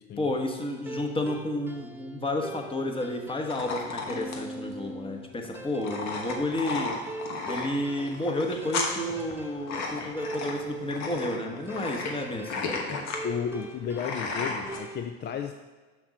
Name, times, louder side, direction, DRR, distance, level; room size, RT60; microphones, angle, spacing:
voice 1, 0.2-7.0 7.4-12.8, left 1 dB, 15° left, 3 dB, 1.2 m, -31 dB
sound 1, 0.6-15.0, right 3 dB, 5° right, 0.7 m, -42 dB
sound 2, 3.5-14.8, left 4 dB, 60° left, 1.2 m, -34 dB
voice 2, 13.2-15.5, left 7 dB, 35° left, 6 dB, 0.4 m, -33 dB
6.1 x 5.9 x 4.0 m, 1.3 s
hypercardioid pair, 75°, 31 cm